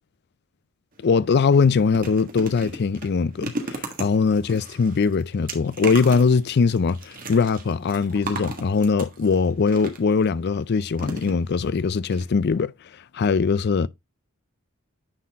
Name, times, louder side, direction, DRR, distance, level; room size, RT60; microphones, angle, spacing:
sound 1, 0.9-1.1 1.5-10.3 11.0-11.8 12.1-12.2 12.5-12.6, right 2 dB, 40° right, 1.6 m, -36 dB
voice 1, 1.0-12.7 13.1-13.9, left 5 dB, 50° left, 0.4 m, -21 dB
9.6 x 4.3 x 3.5 m
head